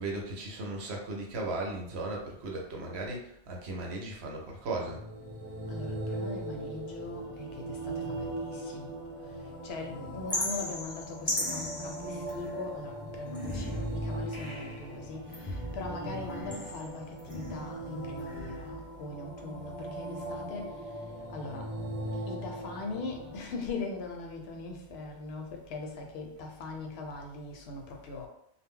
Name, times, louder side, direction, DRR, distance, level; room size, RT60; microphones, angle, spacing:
voice 1, 0.0-5.0 8.6-8.8 22.1-22.2, right 2 dB, 70° right, 0.9 m, -36 dB
sound 1, 4.6-23.4, right 1 dB, 15° right, 1.0 m, -39 dB
voice 2, 5.7-8.3 8.7-8.9 9.6-15.3 15.7-20.7 21.3-21.7 22.3-28.3, left 3 dB, 70° left, 0.8 m, -40 dB
sound 2, 10.3-12.7 13.2-14.9 15.3-17.8 18.2-18.9, left 1 dB, 15° left, 0.7 m, -37 dB
2.1 x 2.0 x 3.5 m
omnidirectional pair, 1.1 m